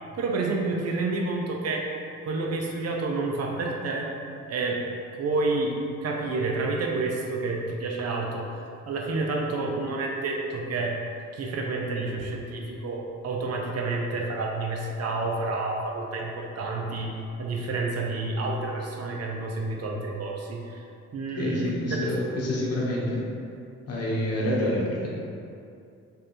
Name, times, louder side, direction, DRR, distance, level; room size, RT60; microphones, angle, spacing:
voice 1, 0.2-1.9 2.2-4.1 4.5-4.8 5.2-5.8 6.0-8.6 8.9-11.0 11.3-20.8 21.1-22.3, right 3 dB, 55° right, 0 dB, 0.7 m, -29 dB
voice 2, 21.4-23.2 23.9-25.2, left 1 dB, 55° left, -4 dB, 1.2 m, -27 dB
3.6 x 3.2 x 4.2 m, 2.5 s
cardioid pair, 90°, 30 cm